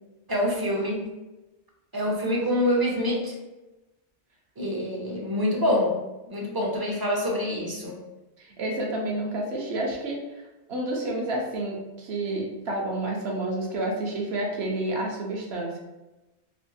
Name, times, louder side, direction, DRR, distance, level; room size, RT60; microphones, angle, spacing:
voice 1, 0.3-1.1 1.9-3.3 4.6-6.0 6.3-8.0, left 1 dB, 30° right, -1 dB, 0.4 m, -26 dB
voice 2, 8.4-10.2 10.7-15.8, right 1 dB, 65° right, -1 dB, 1.0 m, -29 dB
3.3 x 3.0 x 2.7 m, 1.0 s
omnidirectional pair, 1.2 m